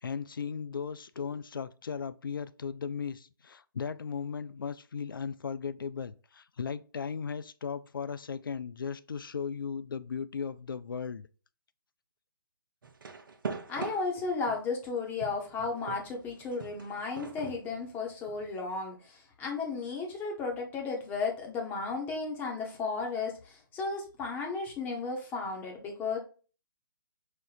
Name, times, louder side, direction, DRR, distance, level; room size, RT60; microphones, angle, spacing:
voice 1, 0.0-11.3, left 6 dB, 70° left, 0.4 m, -37 dB
sound 1, 12.8-14.7 15.2-18.5, right 5 dB, 65° right, 0.8 m, -42 dB
voice 2, 13.7-26.2, left 4 dB, 15° left, 1.1 m, -34 dB
5.1 x 2.5 x 4.0 m
figure-of-eight pair, 135°, 12 cm